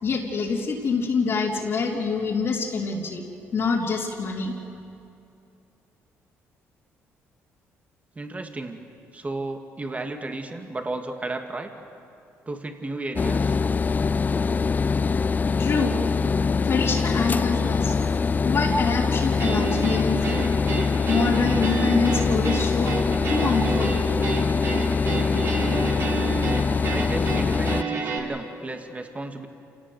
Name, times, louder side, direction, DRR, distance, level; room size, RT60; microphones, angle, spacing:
voice 1, 0.0-3.2 3.5-4.5 15.6-16.0 16.6-18.0 18.4-20.5 21.1-23.0 23.3-24.0, left 4 dB, 55° left, -6 dB, 3.3 m, -25 dB
voice 2, 8.2-8.8 9.1-11.7 12.5-13.6 26.9-29.5, right 2 dB, 25° right, 4 dB, 2.4 m, -33 dB
sound 1, 13.2-27.8, left 5 dB, 30° left, 0.4 m, -23 dB
sound 2, 19.4-28.2, right 4 dB, 55° right, 3.8 m, -30 dB
27.5 x 17.5 x 8.0 m, 2.6 s
cardioid pair, 75°, 5 cm